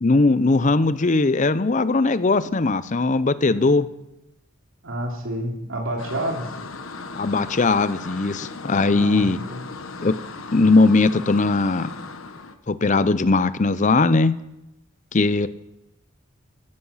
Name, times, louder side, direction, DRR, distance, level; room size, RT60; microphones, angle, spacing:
voice 1, 0.0-3.8 7.2-9.4 10.0-10.1 10.5-11.9 12.7-14.4 15.1-15.5, left 3 dB, 35° left, 15 dB, 0.6 m, -19 dB
voice 2, 3.5-3.9 4.8-6.5 8.9-9.6, right 1 dB, 80° right, 1 dB, 2.9 m, -30 dB
sound 1, 6.0-12.6, left 3 dB, 90° left, 1.2 m, -37 dB
15.5 x 14.0 x 5.7 m, 0.91 s
head